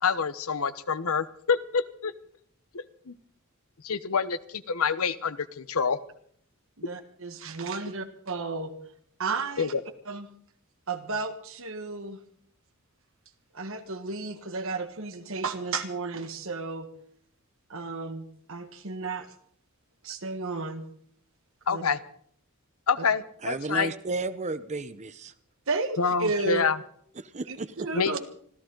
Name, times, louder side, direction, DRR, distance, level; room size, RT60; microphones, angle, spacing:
voice 1, 0.0-2.1 2.7-3.1 3.8-6.0 9.6-9.8 21.7-22.0 22.9-23.9 26.0-26.8 27.9-28.2, left 5 dB, 75° left, 0.9 m, -27 dB
voice 2, 6.8-8.7 9.2-9.7 10.1-10.3 10.9-12.2 13.5-16.9 17.7-19.3 20.0-20.8 21.7-21.8 25.7-26.6 27.5-28.2, right 3 dB, 65° right, 1.7 m, -33 dB
voice 3, 23.4-25.3 27.2-27.9, right 3 dB, 30° right, 0.7 m, -33 dB
25.5 x 14.5 x 3.9 m
head